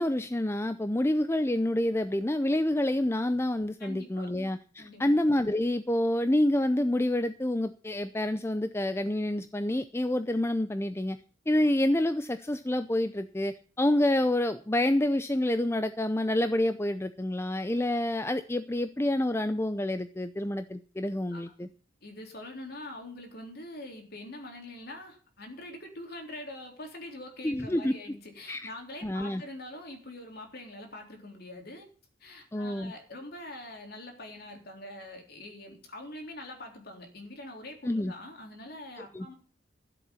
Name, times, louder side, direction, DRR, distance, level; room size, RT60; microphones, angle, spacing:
voice 1, 0.0-11.2 11.5-21.7 27.4-27.9 28.5-28.7 29.0-29.4 32.5-32.9 37.8-38.1 39.1-39.3, left 1 dB, 15° left, 11 dB, 0.5 m, -28 dB
voice 2, 3.8-4.3 4.8-5.1 21.3-21.7 22.0-31.9 32.2-39.3, left 1 dB, 50° left, 3 dB, 3.7 m, -44 dB
13.0 x 7.9 x 7.1 m, 0.39 s
head